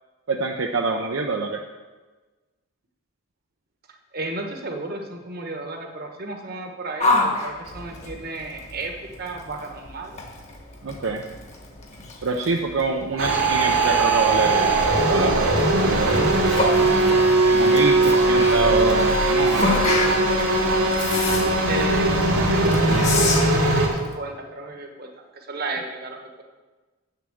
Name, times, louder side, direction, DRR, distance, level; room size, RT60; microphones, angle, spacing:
voice 1, 0.3-1.6 10.8-11.2 12.2-15.4 15.7-16.3 17.5-19.9, right 3 dB, 65° right, 2 dB, 0.6 m, -25 dB
voice 2, 4.1-10.2 21.7-26.4, right 2 dB, 45° right, 3 dB, 1.2 m, -33 dB
Yell, 7.0-24.1, left 2 dB, 30° left, 1.1 m, -30 dB
sound 1, 13.2-23.9, right 2 dB, 80° right, 2.5 m, -19 dB
7.4 x 6.8 x 7.7 m, 1.3 s
head